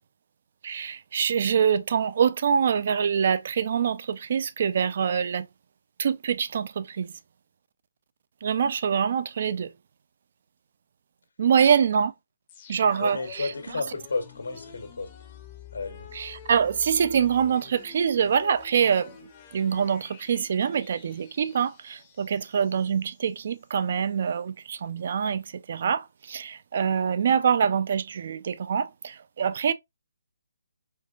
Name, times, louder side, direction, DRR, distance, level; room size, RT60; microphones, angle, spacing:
voice 1, 0.6-5.5 6.0-7.1 8.4-9.7 11.4-12.1 12.7-13.5 16.1-19.2 19.5-29.7, right 7 dB, 45° right, 0.3 m, -25 dB
sound 1, 12.5-23.3 23.6-23.7, left 8 dB, 25° left, 0.6 m, -48 dB
voice 2, 13.0-15.1 15.7-16.1, left 3 dB, 90° left, 1.3 m, -32 dB
4.4 x 2.4 x 2.3 m
hypercardioid pair, 165°, 0 cm